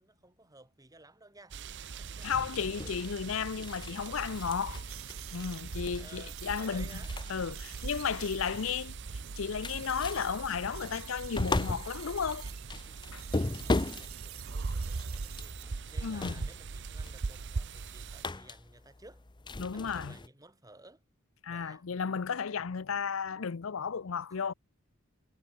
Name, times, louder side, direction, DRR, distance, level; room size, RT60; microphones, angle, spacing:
voice 1, 0.0-2.3 5.9-7.1 7.4-7.6 8.2-8.8 13.6-15.6 15.9-19.3 19.7-21.0 21.5-21.8, right 2 dB, 15° right, 4.3 m, -56 dB
sound 1, 1.5-18.3, right 4 dB, 60° right, 0.6 m, -41 dB
voice 2, 2.2-4.8 5.3-6.9 7.3-8.9 9.4-12.5 13.1-13.2 16.0-16.5 19.6-20.1 21.4-24.5, left 6 dB, 70° left, 0.6 m, -34 dB
sound 2, 2.3-20.3, left 2 dB, 20° left, 0.7 m, -39 dB
Rewind Music, 4.9-12.7 13.0-15.6, right 17 dB, 85° right, 1.1 m, -51 dB
head